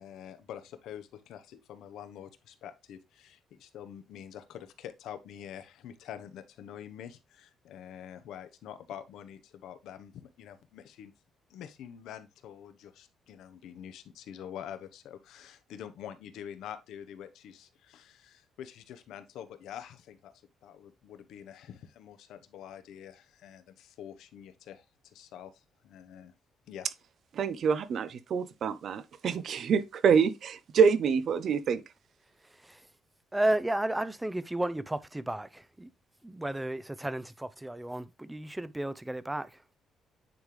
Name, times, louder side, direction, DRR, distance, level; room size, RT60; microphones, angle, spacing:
voice 1, 0.0-11.1 11.5-20.3 20.6-26.3 26.7-26.9, left 9 dB, 85° left, 0.9 m, -46 dB
voice 2, 27.3-31.8, right 6 dB, 60° right, 0.6 m, -26 dB
voice 3, 32.4-32.9 33.3-35.9 36.2-39.8, right 1 dB, 10° right, 0.6 m, -33 dB
9.3 x 3.7 x 3.2 m
cardioid pair, 90°, 0 cm